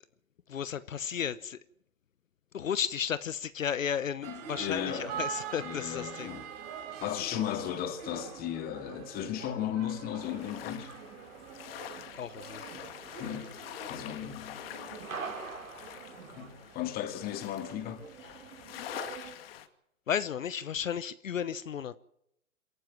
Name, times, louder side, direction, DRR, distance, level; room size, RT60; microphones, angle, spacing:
voice 1, 0.5-1.6 2.5-6.3 12.2-12.6 14.2-14.3 20.1-22.0, left 8 dB, 70° left, 1.0 m, -33 dB
sound 1, 4.2-19.3, right 8 dB, 30° right, 4.8 m, -45 dB
voice 2, 4.3-5.2 5.6-6.5 7.0-10.9 13.2-13.6 13.9-14.7 16.4-18.0, left 10 dB, 20° left, 2.4 m, -35 dB
sound 2, 4.5-16.5, right 4 dB, 75° right, 6.2 m, -48 dB
sound 3, 10.2-19.7, left 11 dB, 45° left, 2.4 m, -46 dB
28.0 x 12.5 x 7.4 m
hypercardioid pair, 130°, 41 cm